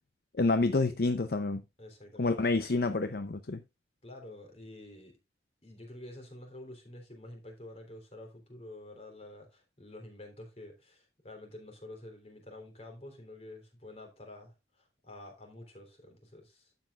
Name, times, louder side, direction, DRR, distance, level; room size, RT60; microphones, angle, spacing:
voice 1, 0.3-1.6 2.2-3.6, left 3 dB, 55° left, 0.6 m, -28 dB
voice 2, 1.8-2.7 4.0-5.2 5.6-16.8, left 1 dB, 35° left, 3.5 m, -49 dB
12.0 x 7.9 x 2.4 m
head